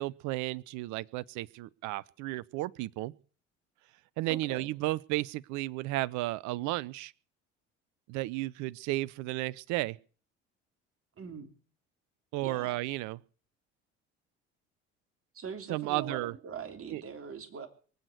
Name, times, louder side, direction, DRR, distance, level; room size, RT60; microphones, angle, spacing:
voice 1, 0.0-3.1 4.2-7.1 8.1-10.0 12.3-13.2 15.7-16.3 16.9-17.0, right 18 dB, 55° right, 0.7 m, -33 dB
voice 2, 4.3-4.7 11.2-11.5 12.4-12.8 15.3-17.7, right 6 dB, 40° right, 3.2 m, -42 dB
23.5 x 8.1 x 6.6 m
figure-of-eight pair, 55°, 34 cm